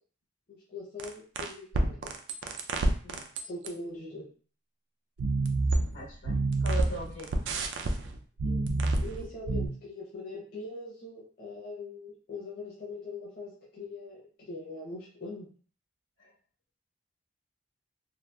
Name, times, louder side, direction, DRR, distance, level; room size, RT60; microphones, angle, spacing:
voice 1, 0.5-2.1 3.4-4.2 8.4-8.6 9.0-15.5, left 2 dB, 50° left, -5 dB, 0.7 m, -42 dB
sound 1, 1.0-3.7 5.2-9.7, right 2 dB, 70° right, 0.3 m, -28 dB
voice 2, 5.9-7.5 16.2-16.3, right 1 dB, 85° left, -3 dB, 1.1 m, -40 dB
2.8 x 2.3 x 2.2 m, 0.42 s
head